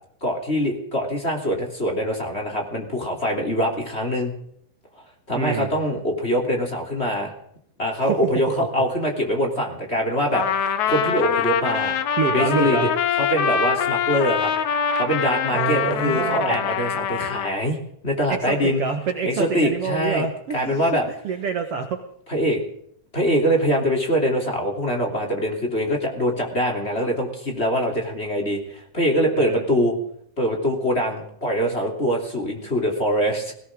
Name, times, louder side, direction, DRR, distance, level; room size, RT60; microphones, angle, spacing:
voice 1, 0.2-4.3 5.3-7.3 7.8-12.0 12.3-12.8 13.3-14.5 15.0-17.8 18.0-18.8 19.3-20.3 20.5-21.0 22.3-22.6 23.1-29.9 30.4-33.5, equal, 20° left, 1 dB, 3.3 m, -23 dB
voice 2, 5.3-5.7 8.0-8.2 12.2-12.9 15.5-16.6 18.3-20.8 21.2-22.0 29.3-29.6, right 6 dB, 55° right, 5 dB, 2.1 m, -26 dB
Trumpet, 10.3-17.5, left 7 dB, 75° left, 2.5 m, -24 dB
22.0 x 17.0 x 3.7 m, 0.69 s
omnidirectional pair, 3.4 m